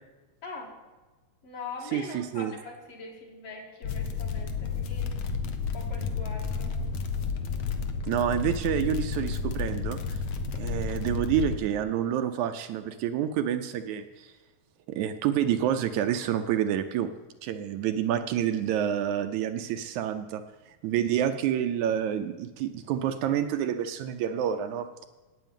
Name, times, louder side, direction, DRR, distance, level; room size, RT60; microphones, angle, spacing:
voice 1, 0.4-0.7 1.4-5.1 5.7-6.8, left 3 dB, 50° left, -1 dB, 3.1 m, -42 dB
voice 2, 1.9-2.5 8.1-10.2 10.6-14.3 14.9-17.1 17.4-20.4 20.8-24.9, right 10 dB, 80° right, 8 dB, 1.9 m, -28 dB
sound 1, 3.8-11.6, left 5 dB, 75° left, 1.2 m, -31 dB
9.2 x 8.7 x 9.0 m, 1.2 s
omnidirectional pair, 3.5 m